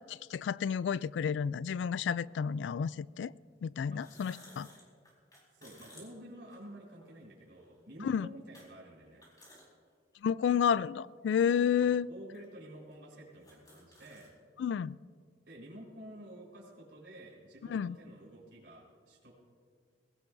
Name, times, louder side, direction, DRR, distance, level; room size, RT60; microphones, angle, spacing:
voice 1, 0.1-3.3 3.6-4.7 8.0-8.3 10.2-12.1 14.6-15.0 17.7-18.0, left 7 dB, 75° left, 19 dB, 0.3 m, -31 dB
sound 1, 0.9-1.0 2.3-2.4 3.8-7.1 7.6-7.7 8.5-8.7 9.0-9.7 10.1-10.2 11.1-11.2 12.0-12.1 12.3-12.5 12.9-13.0 13.2-14.3, left 1 dB, 20° left, 4.4 m, -57 dB
voice 2, 5.5-9.2 11.8-14.3 15.5-19.3, right 1 dB, 70° right, -5 dB, 4.4 m, -50 dB
21.5 x 17.0 x 2.7 m, 2.1 s
head